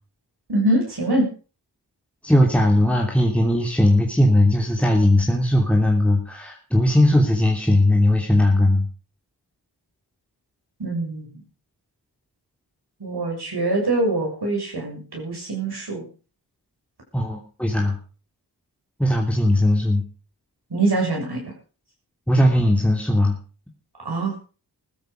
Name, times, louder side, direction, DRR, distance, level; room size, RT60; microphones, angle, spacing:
voice 1, 0.5-1.3 10.8-11.4 13.0-16.1 20.7-21.5 24.0-24.3, right 2 dB, 65° right, 0 dB, 6.7 m, -24 dB
voice 2, 2.2-8.9 17.1-18.0 19.0-20.0 22.3-23.3, left 1 dB, 5° left, 0 dB, 3.0 m, -18 dB
15.5 x 13.0 x 5.2 m, 0.37 s
wide cardioid pair, 60°, 43 cm